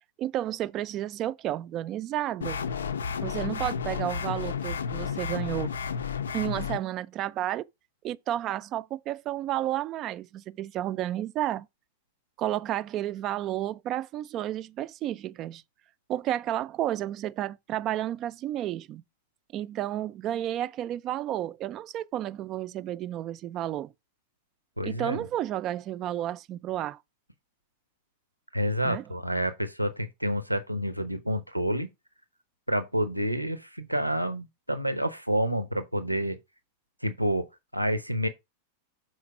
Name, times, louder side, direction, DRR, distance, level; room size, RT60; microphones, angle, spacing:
voice 1, 0.2-2.6 3.2-5.7 6.3-7.6 8.0-11.7 12.4-15.6 16.1-19.0 19.5-23.9 24.8-27.0 28.8-29.0, right 12 dB, 35° right, 0.4 m, -31 dB
sound 1, 2.4-6.8, left 6 dB, 70° left, 0.5 m, -32 dB
voice 2, 24.8-25.3 28.5-31.9 32.7-36.4 37.0-37.5 37.7-38.3, equal, 90° right, 0.7 m, -28 dB
6.5 x 4.4 x 4.9 m
figure-of-eight pair, 90°, 0 cm